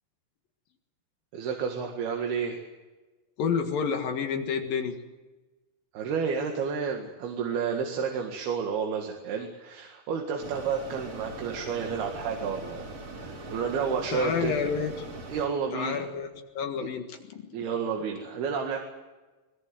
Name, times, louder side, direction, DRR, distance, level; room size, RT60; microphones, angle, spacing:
voice 1, 1.3-2.6 5.9-12.9 13.2-14.5 15.3-16.0 17.5-18.8, right 6 dB, 70° right, 2 dB, 3.9 m, -30 dB
voice 2, 3.4-5.0 14.1-15.1 15.7-16.3 16.5-17.6, left 6 dB, 60° left, 6 dB, 3.2 m, -29 dB
Mechanisms, 10.4-15.5, right 2 dB, 40° right, 4.9 m, -41 dB
22.0 x 21.5 x 7.8 m, 1.2 s
omnidirectional pair, 4.8 m